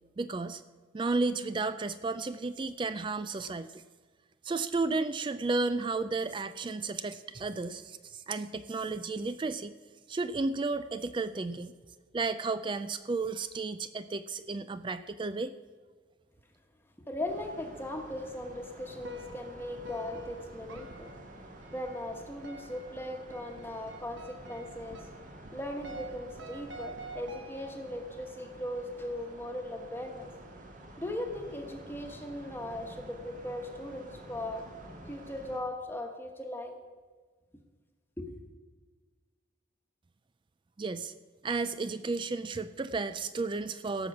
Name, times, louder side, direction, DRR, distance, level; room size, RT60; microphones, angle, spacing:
voice 1, 0.2-0.6 0.9-3.8 4.4-9.7 10.1-11.7 12.1-15.5 40.8-41.1 41.4-44.1, right 3 dB, 25° right, 12 dB, 0.3 m, -33 dB
voice 2, 17.1-21.1 21.7-25.0 25.5-30.3 31.0-34.7 35.1-36.8 38.2-38.3, left 1 dB, 10° left, 3 dB, 1.2 m, -38 dB
sound 1, 17.3-35.6, right 1 dB, 40° right, 1.7 m, -50 dB
sound 2, 19.0-28.0, right 2 dB, 90° right, 1.4 m, -48 dB
17.0 x 6.0 x 7.1 m, 1.5 s
head